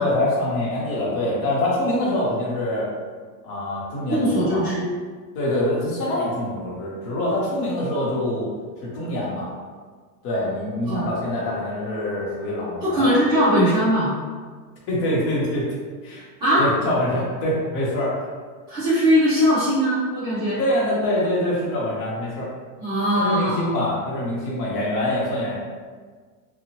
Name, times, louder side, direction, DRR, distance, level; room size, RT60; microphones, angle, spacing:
voice 1, 0.0-2.9 3.4-4.7 5.3-8.5 8.8-9.5 10.2-13.2 14.9-15.7 16.0-16.2 16.6-18.3 20.6-22.5 23.1-25.6, left 1 dB, 30° left, -6 dB, 0.7 m, -25 dB
voice 2, 4.1-4.9 10.9-11.1 12.8-14.1 16.4-16.6 18.7-20.6 22.8-23.7, equal, 10° right, -15 dB, 1.0 m, -20 dB
2.8 x 2.1 x 2.9 m, 1.5 s
supercardioid pair, 160°, 48 cm